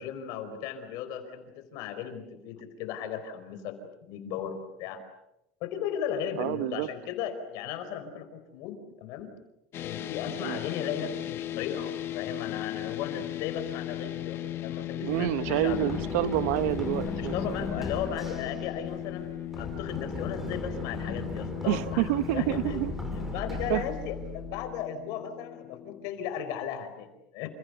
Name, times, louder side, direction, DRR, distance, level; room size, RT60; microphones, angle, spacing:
voice 1, 0.0-3.7 4.1-5.0 5.6-9.3 9.8-15.9 17.1-22.8 23.1-27.5, left 8 dB, 50° left, 8 dB, 4.8 m, -36 dB
voice 2, 6.4-6.9 10.4-10.6 15.0-17.3 21.7-22.9 23.7-23.8, right 16 dB, 70° right, 14 dB, 1.1 m, -28 dB
sound 1, 9.7-26.1, left 13 dB, 30° left, 1.4 m, -37 dB
Run, 15.1-24.8, left 1 dB, 5° right, 4.6 m, -37 dB
29.5 x 29.0 x 6.9 m, 0.85 s
cardioid pair, 170°, 8 cm